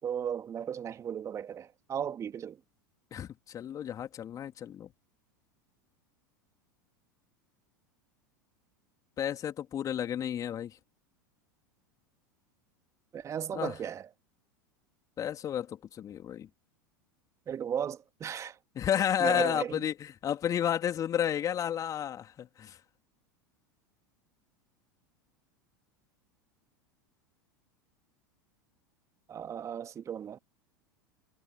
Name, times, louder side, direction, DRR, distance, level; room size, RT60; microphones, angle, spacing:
voice 1, 0.0-2.6 13.1-14.1 17.5-18.6 19.2-19.8 29.3-30.4, right 8 dB, 30° right, 2.3 m, -35 dB
voice 2, 3.1-4.9 9.2-10.7 13.5-13.7 15.2-16.5 18.7-22.8, left 10 dB, 35° left, 3.5 m, -31 dB
figure-of-eight pair, 85°, 11 cm